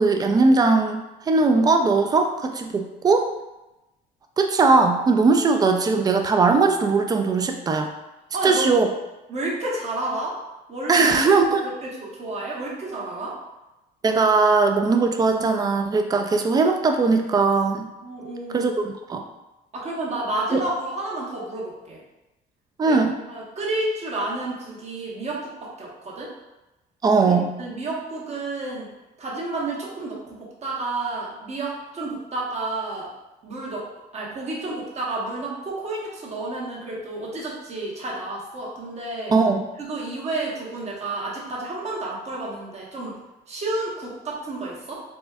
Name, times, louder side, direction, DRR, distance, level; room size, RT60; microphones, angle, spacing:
voice 1, 0.0-3.3 4.4-7.9 8.4-8.9 10.9-11.7 14.0-17.9 18.5-19.2 20.5-20.6 22.8-23.1 27.0-27.5 39.3-39.7, right 4 dB, 25° right, 5 dB, 0.3 m, -19 dB
voice 2, 8.3-8.8 9.3-10.4 10.7-11.1 11.6-13.4 18.0-18.7 19.7-22.0 22.8-23.0 23.3-26.3 27.1-28.9 29.2-33.1 33.4-33.9 34.1-39.3 39.8-43.2 43.5-45.0, right 2 dB, 40° right, -4 dB, 0.9 m, -30 dB
4.1 x 2.2 x 2.3 m, 1.0 s
cardioid pair, 110°, 17 cm